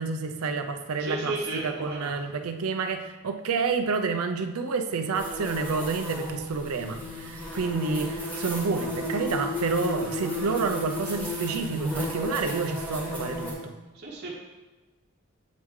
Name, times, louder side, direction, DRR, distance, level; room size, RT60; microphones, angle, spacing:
voice 1, 0.0-13.7, right 4 dB, 80° right, 7 dB, 0.5 m, -29 dB
voice 2, 1.0-2.1 13.9-14.3, right 2 dB, 50° right, -4 dB, 1.0 m, -33 dB
sound 1, 5.1-13.5, left 1 dB, 5° left, 1.2 m, -33 dB
8.3 x 3.1 x 3.6 m, 1.2 s
head